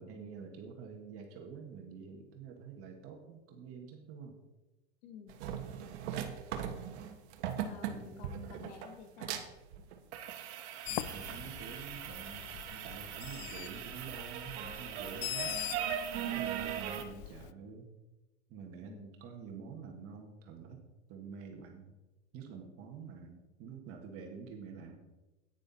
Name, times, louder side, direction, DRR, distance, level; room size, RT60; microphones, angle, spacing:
voice 1, 0.0-4.4 7.8-8.4 10.9-15.6 16.3-17.9 18.5-20.8 21.1-22.0 22.3-25.0, right 6 dB, 40° right, 2 dB, 1.7 m, -48 dB
voice 2, 5.0-5.4 7.6-9.4 16.1-16.5 18.8-19.1, left 7 dB, 60° left, 7 dB, 1.7 m, -51 dB
sound 1, 5.3-17.0, right 9 dB, 65° right, 1.3 m, -39 dB
Bird, 10.9-17.5, left 16 dB, 40° left, 0.4 m, -43 dB
Explosion, 11.0-12.6, equal, ahead, 1.9 m, -53 dB
9.8 x 9.4 x 4.1 m, 1.1 s
supercardioid pair, 130°, 35 cm